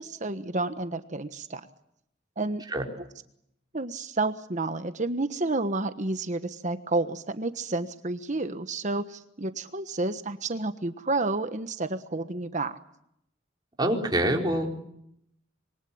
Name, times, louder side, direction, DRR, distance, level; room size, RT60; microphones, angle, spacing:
voice 1, 0.0-1.6 2.4-2.6 3.7-12.8, right 2 dB, 40° right, 10 dB, 1.3 m, -30 dB
voice 2, 13.8-14.9, right 1 dB, 20° right, 1 dB, 4.6 m, -26 dB
26.5 x 23.5 x 8.6 m, 0.75 s
head